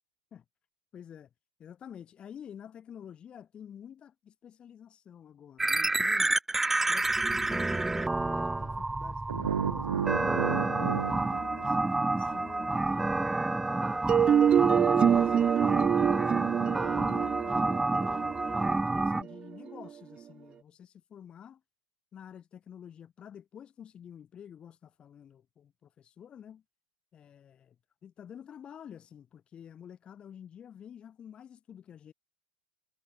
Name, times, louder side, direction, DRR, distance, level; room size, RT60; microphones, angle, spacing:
voice 1, 0.9-1.3 1.6-6.3 6.9-13.1 13.5-15.6 16.0-18.6 18.8-21.6 22.1-26.6 27.1-27.8 28.0-32.1, left 9 dB, 30° left, 7.6 m, -49 dB
sound 1, 5.6-19.2, right 2 dB, 10° right, 2.9 m, -29 dB
sound 2, 9.3-12.4, right 8 dB, 80° right, 1.5 m, -33 dB
sound 3, 14.1-19.9, right 8 dB, 30° right, 0.4 m, -26 dB
hypercardioid pair, 90°, 3 cm